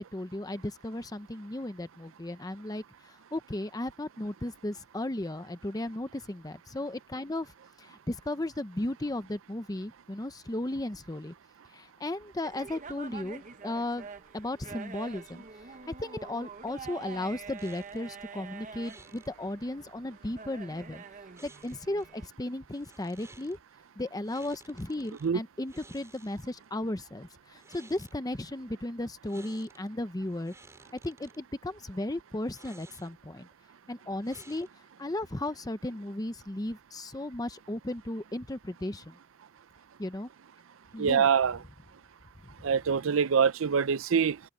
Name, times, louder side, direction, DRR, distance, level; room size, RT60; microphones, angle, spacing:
voice 1, 0.0-7.5 7.8-11.3 11.7-14.1 14.3-21.0 21.4-23.6 24.0-30.5 31.0-33.5 33.9-34.7 35.0-39.2 40.0-40.3 40.9-41.3, left 1 dB, 20° left, 0.7 m, -35 dB
sound 1, 12.4-22.3, right 5 dB, 40° right, 0.9 m, -46 dB
sound 2, 17.6-18.1 18.8-19.3 21.3-22.0 22.7-23.6 24.2-25.3 25.6-26.6 27.5-28.2 29.2-29.9 30.2-31.4 32.5-33.3 34.2-34.9, right 2 dB, 15° right, 4.2 m, -55 dB
voice 2, 41.0-41.6 42.6-44.4, right 6 dB, 80° right, 0.5 m, -24 dB
head